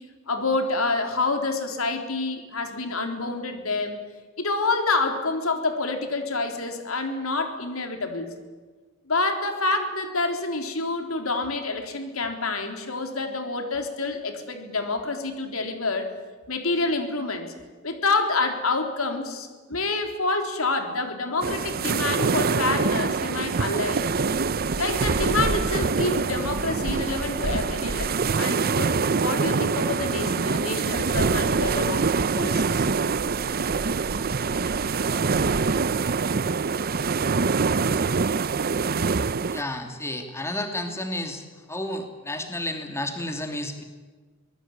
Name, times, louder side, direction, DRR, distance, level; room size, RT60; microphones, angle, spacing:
voice 1, 0.3-4.0 4.4-8.3 9.1-16.1 16.5-17.5 17.8-24.1 24.8-32.9, left 3 dB, 90° left, 5 dB, 3.7 m, -27 dB
sound 1, 21.4-39.6, right 4 dB, 45° right, 0.6 m, -24 dB
voice 2, 39.5-41.4 41.7-43.8, left 1 dB, 15° left, 5 dB, 2.7 m, -31 dB
25.0 x 19.5 x 8.9 m, 1.4 s
head